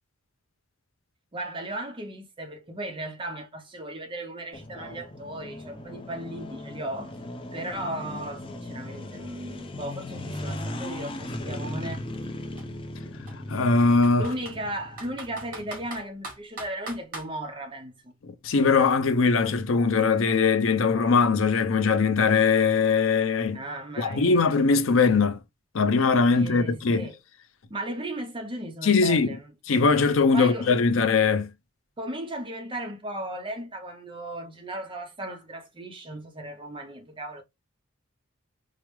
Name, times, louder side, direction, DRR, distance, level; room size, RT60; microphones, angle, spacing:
voice 1, 1.3-7.2 7.5-12.1 14.2-18.1 23.5-24.4 26.3-27.2 27.7-29.5 30.3-30.7 32.0-37.4, right 1 dB, 25° right, 0.6 m, -36 dB
sound 1, 4.5-15.9, left 1 dB, 25° left, 0.5 m, -38 dB
Computer keyboard, 9.0-9.1 9.4-11.3 12.1-12.3 12.6-12.7 13.3-14.6 15.0-17.3, right 2 dB, 45° right, 2.6 m, -41 dB
voice 2, 13.5-14.3 18.2-23.6 24.0-25.4 25.7-27.1 28.8-29.3 29.7-31.5, left 4 dB, 75° left, 0.6 m, -21 dB
4.8 x 2.0 x 3.1 m
head